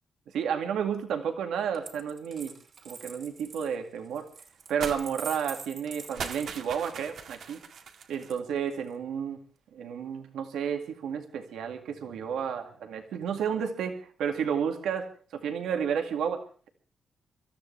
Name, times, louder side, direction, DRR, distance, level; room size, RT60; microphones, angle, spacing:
voice 1, 0.3-2.5 2.9-4.3 4.7-7.6 8.1-9.4 9.7-16.7, right 7 dB, 90° right, 5 dB, 2.2 m, -31 dB
Coin (dropping), 1.7-7.1 8.2-8.9, right 5 dB, 55° right, 2.9 m, -45 dB
sound 1, 4.8-5.0 5.3-5.5 6.0-8.3, right 6 dB, 70° right, 1.9 m, -39 dB
26.0 x 13.5 x 3.4 m, 0.41 s
cardioid pair, 85°, 0 cm